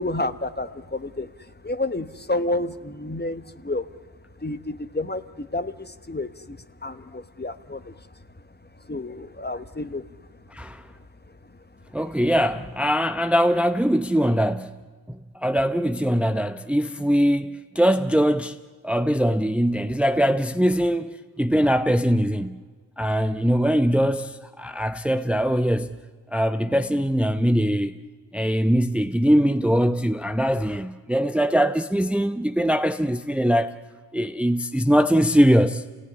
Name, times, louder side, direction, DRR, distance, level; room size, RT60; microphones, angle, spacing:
voice 1, 0.0-3.9 4.4-8.0 8.9-10.0, left 2 dB, 25° left, 1.2 m, -30 dB
voice 2, 10.5-10.8 11.9-14.7 15.1-18.6 18.8-22.6 23.0-26.0 26.3-28.0 28.3-33.7 34.1-35.8, equal, 5° right, 0.7 m, -22 dB
28.0 x 17.5 x 9.8 m
cardioid pair, 40°, 41 cm